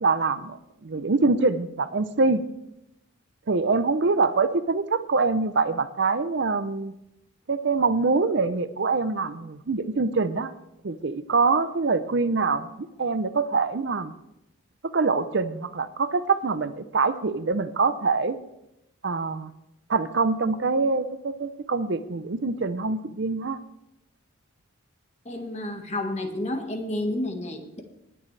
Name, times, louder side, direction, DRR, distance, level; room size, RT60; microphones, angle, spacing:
voice 1, 0.0-2.4 3.5-6.9 7.5-10.5 10.8-12.7 13.0-14.1 14.9-18.4 19.0-19.5 19.9-23.6, right 4 dB, 55° right, 12 dB, 0.6 m, -24 dB
voice 2, 25.2-27.8, left 1 dB, 30° left, 4 dB, 1.5 m, -30 dB
19.0 x 10.0 x 3.3 m, 0.86 s
head